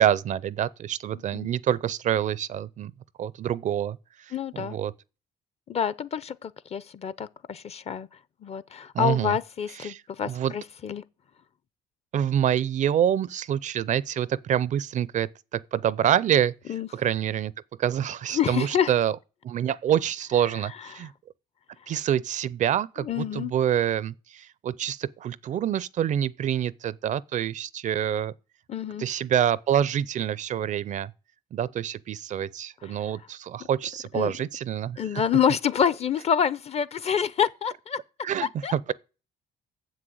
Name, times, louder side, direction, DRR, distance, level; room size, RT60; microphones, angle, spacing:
voice 1, 0.0-2.9 3.2-4.0 4.5-4.9 8.9-9.4 9.8-10.5 12.1-16.5 16.9-17.5 17.8-19.2 19.4-21.1 21.9-28.3 29.0-31.1 31.5-35.0 38.2-38.9, right 10 dB, 45° right, 0.4 m, -26 dB
voice 2, 4.3-4.8 5.7-8.1 8.4-11.0 16.7-16.9 18.3-18.9 21.0-21.1 23.0-23.5 28.7-29.1 32.8-33.0 34.1-34.3 35.0-38.0 38.4-38.7, left 8 dB, 40° left, 0.6 m, -27 dB
7.5 x 6.2 x 7.8 m
cardioid pair, 110°, 17 cm